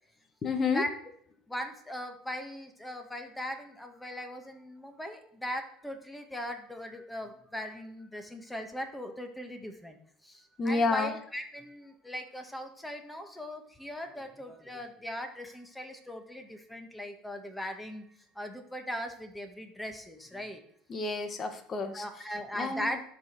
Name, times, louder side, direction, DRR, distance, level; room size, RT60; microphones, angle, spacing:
voice 1, 0.4-0.8 10.6-11.1 20.9-22.0 22.6-23.0, left 4 dB, 30° left, 7 dB, 1.5 m, -30 dB
voice 2, 1.5-20.6 21.9-23.0, equal, 5° left, 5 dB, 1.7 m, -39 dB
12.0 x 5.2 x 6.1 m, 0.64 s
supercardioid pair, 115°, 0 cm